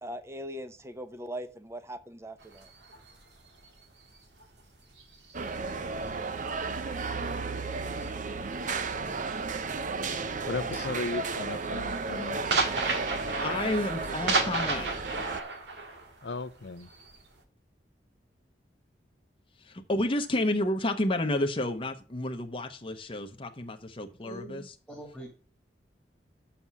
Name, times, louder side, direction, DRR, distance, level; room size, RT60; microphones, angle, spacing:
voice 1, 0.0-2.7, equal, 15° right, 0.8 m, -40 dB
sound 1, 2.4-6.3 6.6-10.0 10.3-10.7 11.0-17.4, right 3 dB, 80° right, 1.8 m, -34 dB
sound 2, 5.3-15.4, right 4 dB, 45° right, 0.7 m, -33 dB
voice 2, 10.4-12.4 16.2-16.9, left 3 dB, 75° left, 0.7 m, -36 dB
voice 3, 13.2-14.9 19.6-24.6, left 1 dB, 30° left, 0.9 m, -30 dB
voice 4, 24.2-25.3, right 1 dB, ahead, 1.7 m, -44 dB
6.9 x 5.7 x 6.1 m
head